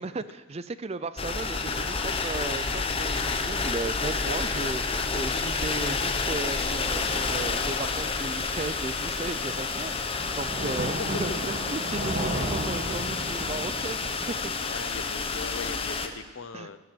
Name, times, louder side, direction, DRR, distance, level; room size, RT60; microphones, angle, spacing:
voice 1, 0.0-14.0 14.3-14.5 16.5-16.7, right 3 dB, 30° right, 14 dB, 0.5 m, -35 dB
sound 1, 1.2-16.1, left 4 dB, 30° left, 0.9 m, -29 dB
Thunder / Rain, 5.0-14.8, right 1 dB, 45° right, 2.7 m, -36 dB
sound 2, 5.6-11.0, right 1 dB, 90° right, 1.9 m, -51 dB
voice 2, 10.6-11.5 14.7-16.8, left 4 dB, 75° left, 12 dB, 0.8 m, -39 dB
18.5 x 7.0 x 7.7 m, 1.2 s
head